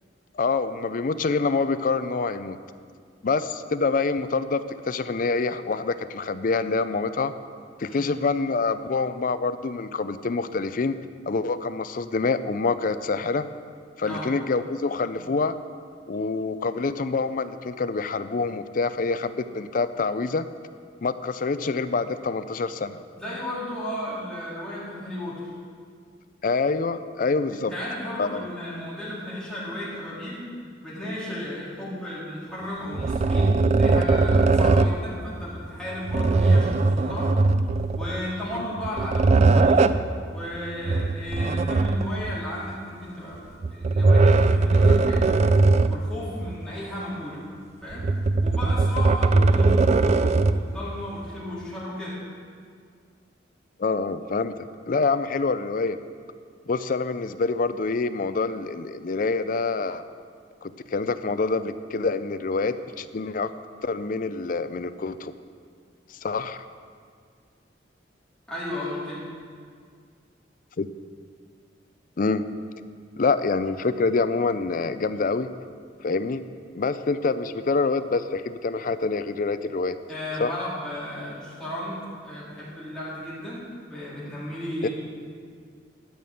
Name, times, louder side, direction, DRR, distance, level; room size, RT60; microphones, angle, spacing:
voice 1, 0.3-2.6 3.2-7.3 7.8-11.0 11.3-13.5 14.0-15.6 16.1-20.5 21.0-23.0 26.4-27.7 28.2-28.5 38.6-38.7 49.3-49.5 53.8-56.0 56.7-60.0 60.6-63.5 63.8-65.3 66.1-66.6 70.8-70.9 72.2-72.5 73.2-75.5 76.0-76.4 76.7-80.0 80.4-80.5 84.8-84.9, left 4 dB, 45° left, 12 dB, 0.4 m, -26 dB
voice 2, 23.2-25.5 27.5-30.4 30.8-37.3 38.0-39.9 40.3-43.4 43.7-45.4 45.9-47.4 47.8-48.1 48.4-52.2 68.5-69.3 80.1-83.6 83.9-84.9, left 1 dB, 5° left, -10 dB, 3.6 m, -34 dB
sound 1, 32.9-35.0 36.1-38.2 38.8-40.1 40.9-42.3 43.6-46.1 46.5-46.6 47.9-50.7, right 3 dB, 35° right, 0.3 m, -20 dB
13.0 x 5.9 x 7.9 m, 2.1 s
head